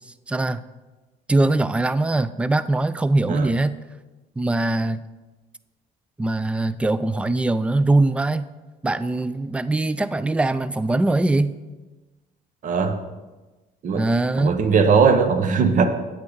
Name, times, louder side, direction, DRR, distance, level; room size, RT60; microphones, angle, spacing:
voice 1, 0.3-0.6 1.3-3.8 4.4-5.0 6.2-8.5 8.8-11.5 13.9-14.6, right 2 dB, 5° right, 15 dB, 0.3 m, -22 dB
voice 2, 12.6-13.0 13.8-14.0 14.4-15.9, right 5 dB, 50° right, 8 dB, 0.9 m, -19 dB
9.2 x 8.3 x 3.9 m, 1.2 s
cardioid pair, 110°, 17 cm